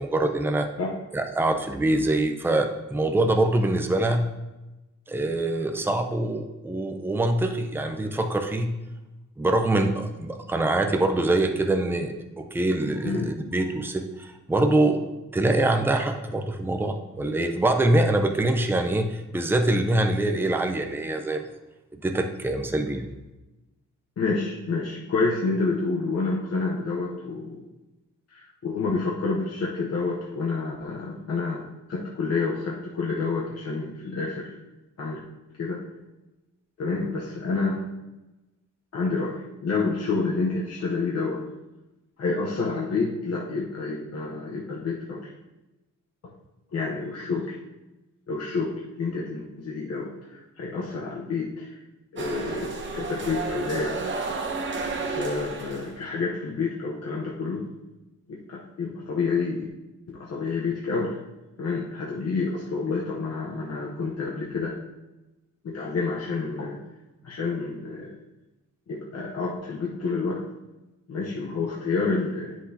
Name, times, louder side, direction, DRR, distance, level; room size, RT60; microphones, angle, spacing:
voice 1, 0.0-0.7 1.1-4.3 5.1-8.7 9.4-15.0 15.3-21.4 21.9-23.1, right 2 dB, 5° right, 5 dB, 0.5 m, -24 dB
voice 2, 24.2-27.6 28.3-34.5 35.0-35.2 35.6-35.8 36.8-37.8 38.9-41.4 42.2-45.3 46.7-47.6 48.3-51.8 52.1-54.0 55.1-57.7 58.3-59.7 60.1-61.2 61.6-64.8 65.6-66.8 67.2-68.2 68.9-70.4 71.1-72.6, left 4 dB, 55° left, -3 dB, 1.0 m, -29 dB
sound 1, 52.2-56.0, right 4 dB, 40° right, 0.9 m, -32 dB
9.8 x 5.9 x 2.8 m, 1.0 s
wide cardioid pair, 150°, 31 cm